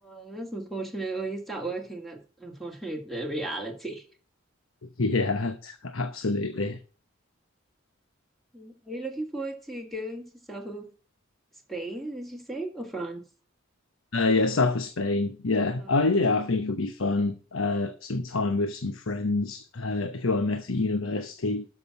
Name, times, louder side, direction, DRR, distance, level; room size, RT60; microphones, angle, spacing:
voice 1, 0.0-4.0 8.5-10.9 11.7-13.2 15.8-16.0, right 2 dB, ahead, 2.2 m, -35 dB
voice 2, 5.0-6.8 14.1-21.7, left 3 dB, 85° left, 1.0 m, -26 dB
12.5 x 6.1 x 6.0 m
head